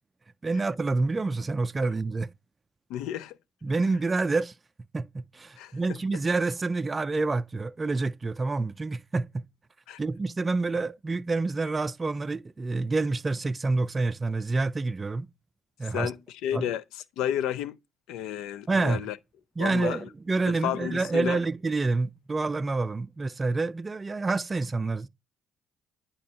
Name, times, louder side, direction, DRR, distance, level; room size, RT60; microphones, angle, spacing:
voice 1, 0.4-2.3 3.6-4.5 4.9-9.4 10.0-15.3 15.8-16.1 16.5-16.7 18.7-19.1 19.6-25.1, right 3 dB, 30° right, 0.3 m, -28 dB
voice 2, 2.9-3.3 5.6-5.7 9.9-10.0 15.9-17.8 18.1-19.2 19.6-20.1 20.6-21.4, left 11 dB, 75° left, 0.4 m, -31 dB
9.3 x 4.3 x 2.8 m
hypercardioid pair, 55°, 0 cm